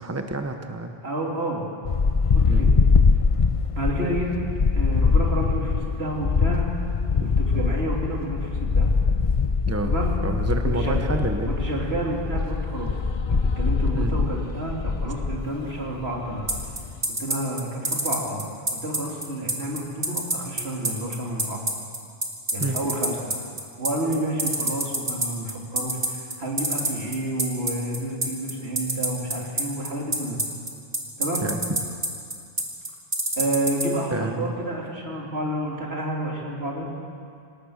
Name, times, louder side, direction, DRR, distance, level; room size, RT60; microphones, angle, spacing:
voice 1, 0.0-1.0 2.5-2.6 7.2-7.4 9.7-9.9 10.2-11.5 13.9-14.2 22.6-22.8 31.4-31.6 34.1-34.6, right 2 dB, 15° right, 5 dB, 1.1 m, -28 dB
voice 2, 1.0-1.6 2.3-2.7 3.7-4.3 4.7-6.7 7.2-8.9 9.9-10.2 10.6-11.0 11.5-13.0 13.3-16.5 17.2-18.4 18.8-21.6 22.5-23.4 23.8-30.4 31.2-31.5 33.4-36.9, right 1 dB, 80° right, -2 dB, 3.7 m, -30 dB
sound 1, 1.8-17.0, left 4 dB, 35° left, 0.7 m, -23 dB
sound 2, 16.5-33.9, right 1 dB, 40° right, 2.6 m, -25 dB
27.0 x 18.0 x 6.6 m, 2.4 s
omnidirectional pair, 1.0 m